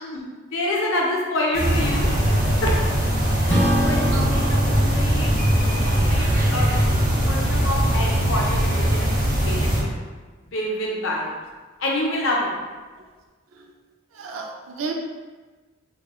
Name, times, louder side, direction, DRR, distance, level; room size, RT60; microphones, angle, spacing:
voice 1, 0.5-2.1 2.6-2.8 3.5-5.3 5.8-9.9 10.5-11.4 11.8-12.5, left 1 dB, 70° left, -2 dB, 0.6 m, -27 dB
sound 1, 1.5-9.8, equal, 50° right, 0.7 m, -20 dB
Acoustic guitar / Strum, 3.5-8.2, right 1 dB, 10° left, 0.6 m, -29 dB
voice 2, 4.1-4.7 13.5-13.7 14.1-14.9, right 4 dB, 85° right, 2 dB, 0.4 m, -33 dB
2.8 x 2.2 x 2.2 m, 1.3 s
head